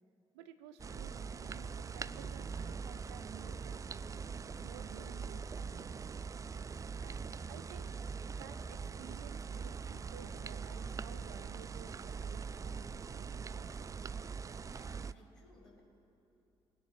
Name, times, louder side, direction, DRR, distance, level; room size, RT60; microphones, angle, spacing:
voice 1, 0.3-4.2 4.6-6.2 6.7-13.7, right 9 dB, 70° right, 11 dB, 0.6 m, -55 dB
sound 1, 0.8-15.1, right 5 dB, 25° right, 0.3 m, -42 dB
voice 2, 14.6-15.8, left 2 dB, 80° left, -9 dB, 2.6 m, -60 dB
23.0 x 10.0 x 3.1 m, 2.8 s
figure-of-eight pair, 40°, 15 cm